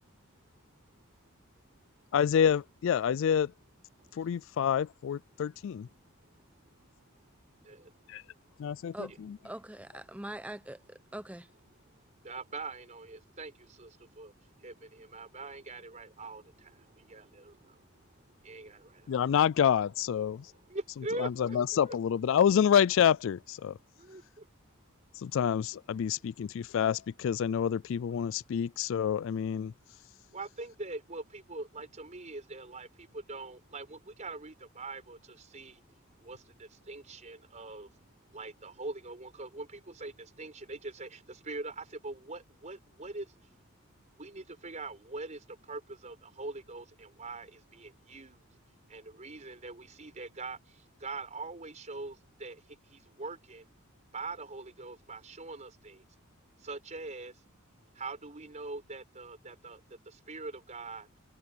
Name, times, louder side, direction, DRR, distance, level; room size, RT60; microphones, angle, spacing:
voice 1, 2.1-3.5 4.2-5.9 8.1-8.2 8.6-9.4 19.1-20.5 21.2-23.8 25.2-29.7, left 8 dB, 60° left, 0.3 m, -28 dB
voice 2, 6.2-9.2 11.8-19.5 20.3-22.0 24.0-24.5 30.3-43.9 44.1-53.7 54.1-56.0 56.6-57.4 57.9-61.1, right 3 dB, 35° right, 4.8 m, -44 dB
voice 3, 8.9-11.5, right 1 dB, 5° right, 0.9 m, -43 dB
head